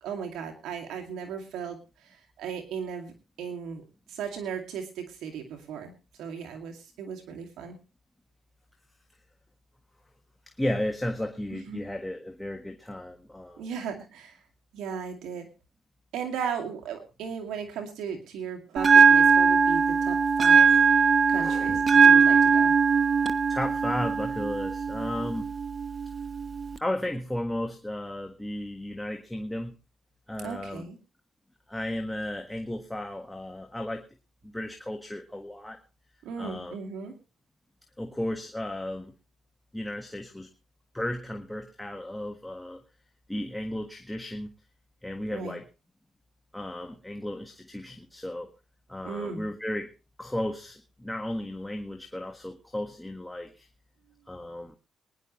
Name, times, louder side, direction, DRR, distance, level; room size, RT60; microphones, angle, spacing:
voice 1, 0.0-3.1 3.4-5.9 6.2-7.8 11.5-11.8 13.6-14.4 14.7-15.5 16.1-22.8 30.4-31.0 36.2-37.1 45.3-45.6 49.0-49.4, right 7 dB, 85° right, 3 dB, 2.3 m, -36 dB
voice 2, 10.6-13.7 21.3-21.8 23.5-25.5 26.8-29.8 30.3-30.8 31.7-34.0 34.4-35.8 36.4-36.8 38.0-39.1 39.7-40.5 40.9-42.8 43.3-44.5 45.0-45.6 46.5-48.5 48.9-49.9 50.2-53.7 54.3-54.7, left 1 dB, 5° left, 4 dB, 1.5 m, -34 dB
Bell, 18.8-26.8, right 5 dB, 40° right, 1.0 m, -21 dB
23.0 x 10.5 x 3.1 m, 0.30 s
cardioid pair, 90°, 0 cm